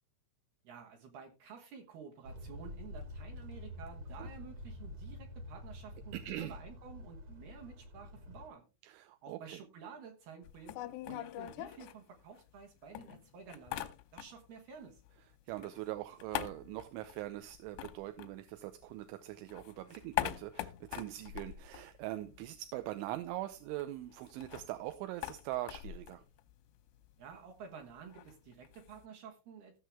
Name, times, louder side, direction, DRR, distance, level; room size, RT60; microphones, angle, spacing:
voice 1, 0.6-8.7 9.2-15.0 27.2-29.8, right 6 dB, 65° right, 2.8 m, -51 dB
sound 1, 2.2-8.5, left 1 dB, 45° right, 1.8 m, -47 dB
voice 2, 6.1-6.5 8.8-9.6 15.5-26.2, right 15 dB, 80° right, 2.9 m, -42 dB
sound 2, 10.4-12.6 12.9-14.6 14.8-19.0 19.3-22.6 22.9-23.0 23.2-29.0, left 15 dB, 80° left, 2.4 m, -43 dB
16.0 x 6.5 x 3.4 m
omnidirectional pair, 5.7 m